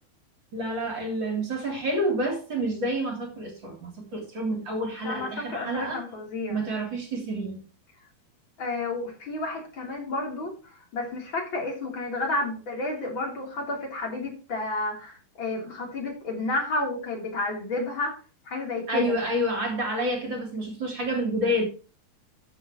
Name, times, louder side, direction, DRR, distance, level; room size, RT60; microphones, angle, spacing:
voice 1, 0.5-6.0 6.5-7.6 18.9-21.6, right 1 dB, 30° right, 2 dB, 3.4 m, -28 dB
voice 2, 5.0-6.6 8.6-10.5 10.9-18.1 18.5-19.1, left 2 dB, 30° left, 0 dB, 3.9 m, -31 dB
14.0 x 7.1 x 3.0 m, 0.35 s
omnidirectional pair, 4.4 m